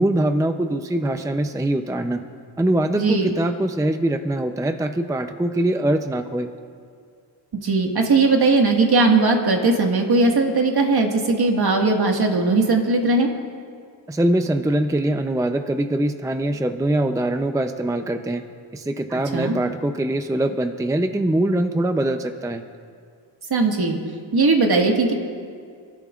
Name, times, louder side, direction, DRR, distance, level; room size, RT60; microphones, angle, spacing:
voice 1, 0.0-2.2 2.6-6.5 14.1-18.4 18.7-22.6, right 1 dB, 10° right, 7 dB, 0.5 m, -23 dB
voice 2, 2.9-3.3 7.6-13.3 19.1-19.6 23.5-24.0 24.3-25.1, right 3 dB, 55° right, 1 dB, 1.8 m, -19 dB
30.0 x 12.5 x 2.4 m, 2.2 s
wide cardioid pair, 100°, 45 cm